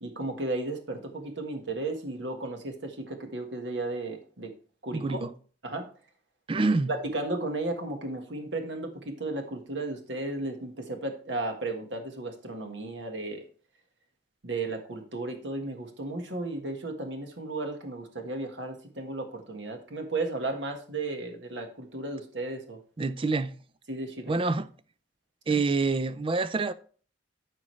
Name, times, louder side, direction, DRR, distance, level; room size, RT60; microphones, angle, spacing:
voice 1, 0.0-4.5 4.8-5.2 5.6-5.9 6.9-13.4 14.4-22.8 23.9-24.3, right 2 dB, 70° right, 1.5 m, -34 dB
voice 2, 4.9-5.3 6.5-6.9 23.0-23.5 24.3-24.7 25.5-26.7, right 3 dB, 30° right, 0.5 m, -26 dB
13.5 x 5.0 x 3.2 m
head